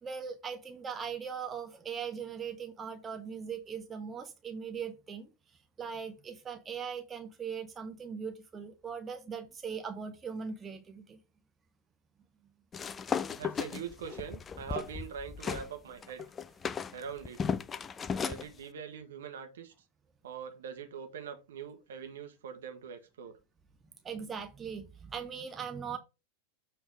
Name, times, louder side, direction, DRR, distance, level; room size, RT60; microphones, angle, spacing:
voice 1, 0.0-5.3 5.8-11.2 24.0-26.0, right 6 dB, 20° right, 0.8 m, -40 dB
sound 1, 12.7-15.7 16.0-18.4, left 6 dB, 20° left, 0.4 m, -35 dB
voice 2, 13.3-16.2 16.9-17.4 18.2-19.7 20.2-23.4, right 7 dB, 60° right, 1.3 m, -43 dB
7.1 x 3.5 x 4.6 m
figure-of-eight pair, 90°, 0 cm